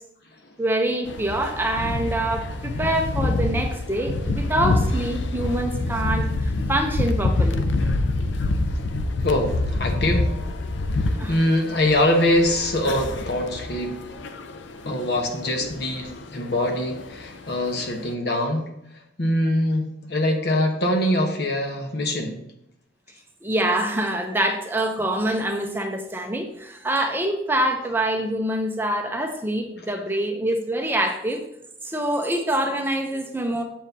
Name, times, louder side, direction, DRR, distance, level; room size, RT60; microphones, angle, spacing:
voice 1, 0.6-7.7 11.2-11.3 23.4-31.4 31.8-33.6, right 1 dB, 10° right, 4 dB, 0.6 m, -25 dB
sound 1, 1.1-18.1, left 2 dB, 80° left, 0.5 m, -27 dB
voice 2, 9.2-10.3 11.3-13.9 14.8-18.6 19.2-22.4, left 1 dB, 60° left, 3 dB, 1.1 m, -23 dB
7.3 x 7.0 x 2.8 m, 0.80 s
head